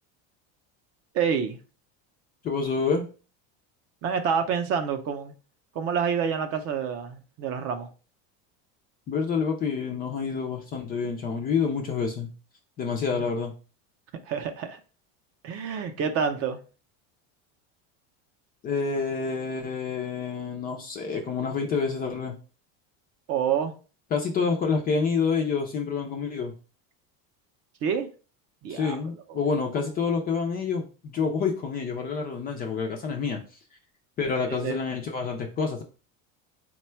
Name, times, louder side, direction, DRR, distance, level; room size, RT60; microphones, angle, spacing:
voice 1, 1.1-1.6 4.0-5.3 5.7-7.9 13.1-13.2 14.2-14.8 15.4-16.6 23.3-23.7 27.8-28.1 28.6-29.0 29.3-29.4 34.6-34.7, right 7 dB, 35° right, 0.5 m, -27 dB
voice 2, 2.4-3.0 9.1-12.3 12.8-13.5 18.6-22.4 24.1-26.5 28.7-33.4 34.2-35.8, left 5 dB, 25° left, 0.4 m, -28 dB
4.1 x 2.2 x 4.3 m
cardioid pair, 155°, 39 cm